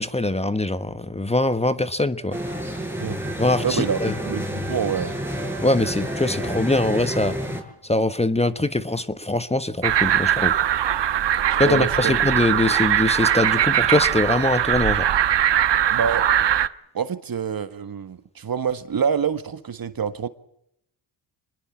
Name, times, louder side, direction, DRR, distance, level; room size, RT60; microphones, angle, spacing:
voice 1, 0.0-2.4 3.4-4.2 5.6-7.4 7.8-10.5 11.6-15.1, left 2 dB, 15° left, 1.3 m, -22 dB
sound 1, 2.3-7.6, equal, 5° right, 6.6 m, -29 dB
voice 2, 3.6-5.1 11.6-12.1 12.5-12.6 15.9-16.3 16.9-20.3, right 7 dB, 50° right, 1.7 m, -26 dB
sound 2, 9.8-16.7, right 10 dB, 65° right, 1.2 m, -21 dB
26.0 x 21.0 x 7.4 m
cardioid pair, 95°, 45 cm